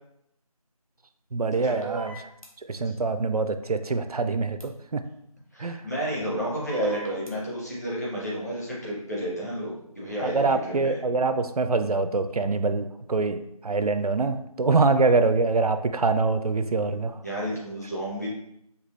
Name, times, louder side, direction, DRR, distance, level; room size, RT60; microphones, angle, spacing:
voice 1, 1.3-2.3 2.7-5.0 5.6-5.8 10.2-17.1, right 3 dB, 80° right, 9 dB, 0.4 m, -24 dB
sound 1, 1.8-2.5 4.6-4.7 6.7-7.3, right 5 dB, 65° left, 1.0 m, -38 dB
voice 2, 5.5-11.0 17.2-18.3, right 1 dB, 25° left, -7 dB, 1.1 m, -31 dB
5.2 x 2.3 x 3.1 m, 0.78 s
figure-of-eight pair, 175°, 19 cm